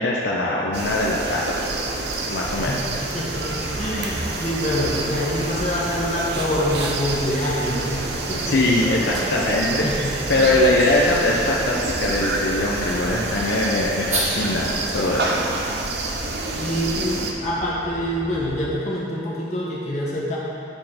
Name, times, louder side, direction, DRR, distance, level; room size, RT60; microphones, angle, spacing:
voice 1, 0.0-1.4 2.3-2.7 8.4-9.9 10.3-15.3, left 2 dB, 75° left, -3 dB, 0.7 m, -21 dB
sound 1, 0.7-17.3, right 2 dB, 65° right, 0.7 m, -28 dB
sound 2, 1.6-18.8, right 1 dB, 20° right, 0.4 m, -37 dB
voice 2, 3.1-9.4 9.7-10.6 16.6-20.4, equal, 40° left, -6 dB, 1.7 m, -26 dB
variety of tuts, 9.3-14.8, right 1 dB, 40° right, 1.5 m, -34 dB
8.8 x 4.3 x 5.8 m, 2.6 s
head